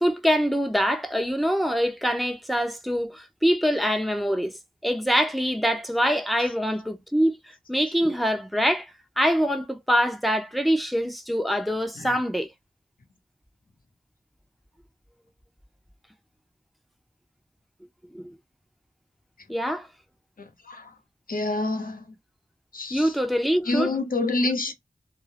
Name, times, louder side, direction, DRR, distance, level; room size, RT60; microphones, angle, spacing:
voice 1, 0.0-7.4 7.7-8.9 9.2-12.5 18.1-18.4 19.5-19.9 22.9-23.9, equal, ahead, 0.7 m, -24 dB
voice 2, 21.3-22.1 22.7-23.1 23.7-24.7, left 2 dB, 75° left, 0.9 m, -27 dB
2.5 x 2.2 x 3.2 m
cardioid pair, 45°, 15 cm